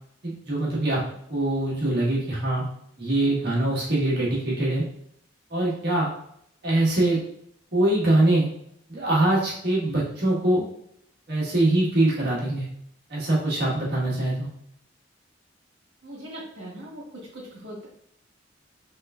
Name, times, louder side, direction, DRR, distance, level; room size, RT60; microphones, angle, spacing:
voice 1, 0.2-1.0 1.3-2.6 3.0-4.8 5.5-6.1 6.6-7.2 7.7-8.5 8.9-10.6 11.3-12.7 13.1-14.5, right 1 dB, 60° right, -6 dB, 1.4 m, -23 dB
voice 2, 16.0-17.9, right 1 dB, 80° right, -6 dB, 1.3 m, -40 dB
3.6 x 3.4 x 2.3 m, 0.71 s
head